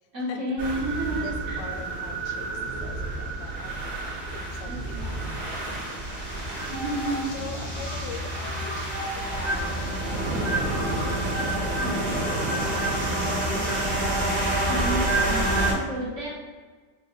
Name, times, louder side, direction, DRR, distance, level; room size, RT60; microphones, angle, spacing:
voice 1, 0.1-1.7 4.7-5.0 6.7-7.5 11.8-12.1 14.7-16.3, right 1 dB, 55° right, -5 dB, 0.8 m, -31 dB
sound 1, 0.6-15.7, right 1 dB, 30° right, 1.0 m, -28 dB
voice 2, 0.7-2.5 2.8-4.0 4.3-6.6 7.2-13.0 16.0-16.3, left 5 dB, 75° left, 4 dB, 1.2 m, -43 dB
5.7 x 2.5 x 2.8 m, 1.4 s
omnidirectional pair, 2.0 m